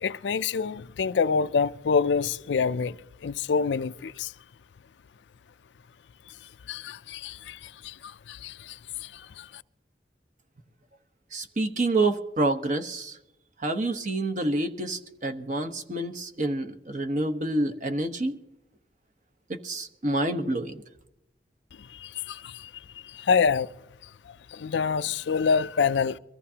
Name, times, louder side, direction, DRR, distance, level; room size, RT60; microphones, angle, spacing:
voice 1, 0.0-3.0 3.2-4.3 6.7-7.6 7.8-7.9 8.3-8.7 9.4-9.5 22.0-22.7 23.1-23.7 24.5-26.2, left 5 dB, 85° left, 0.4 m, -26 dB
voice 2, 11.3-13.2 13.6-18.4 19.5-20.8, right 2 dB, 45° right, 1.1 m, -28 dB
23.5 x 14.5 x 2.8 m
head